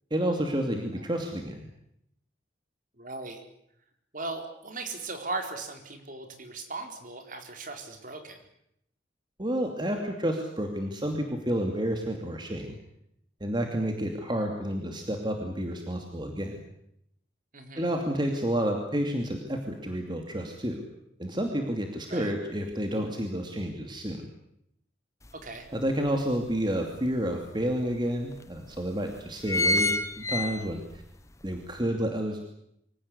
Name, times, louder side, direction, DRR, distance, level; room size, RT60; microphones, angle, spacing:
voice 1, 0.1-1.7 9.4-12.8 13.4-16.6 17.8-20.8 21.2-24.3 25.7-29.9 30.3-31.0 31.4-32.4, equal, 25° right, 3 dB, 2.6 m, -30 dB
voice 2, 3.0-3.4 4.1-8.4 17.5-17.9 22.1-22.3 25.3-25.7, right 3 dB, 45° right, 5 dB, 4.2 m, -38 dB
sound 1, 25.3-25.4 25.8-27.0 27.6-27.7 28.0-28.1 28.7-29.0 29.2-31.0 31.5-31.6, left 1 dB, 15° left, 1.0 m, -27 dB
25.0 x 17.5 x 9.8 m, 0.75 s
head